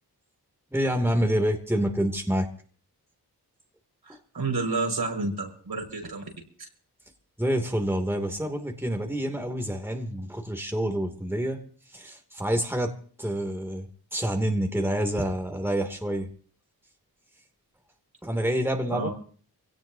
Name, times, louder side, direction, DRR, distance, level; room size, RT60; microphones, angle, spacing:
voice 1, 0.7-2.5 7.4-11.6 11.9-16.3 18.2-19.1, equal, 5° right, 3 dB, 2.9 m, -27 dB
voice 2, 4.0-6.2 18.9-19.1, right 3 dB, 70° right, 1 dB, 5.9 m, -30 dB
24.5 x 17.5 x 2.9 m, 0.44 s
cardioid pair, 45°, 40 cm